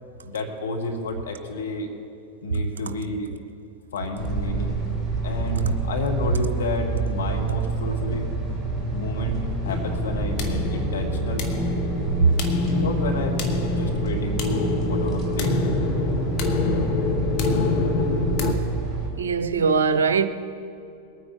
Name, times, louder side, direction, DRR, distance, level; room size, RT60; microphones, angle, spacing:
voice 1, 0.2-1.9 2.4-3.3 3.9-4.8 5.2-8.3 8.9-11.5 12.7-15.6, left 2 dB, 65° left, 1.5 m, -30 dB
sound 1, 4.2-19.1, right 3 dB, 5° left, 3.0 m, -28 dB
sound 2, 9.7-18.5, left 3 dB, 40° left, 1.3 m, -26 dB
voice 2, 19.1-20.3, right 5 dB, 65° right, 0.7 m, -21 dB
21.0 x 9.3 x 4.8 m
figure-of-eight pair, 90°, 0 cm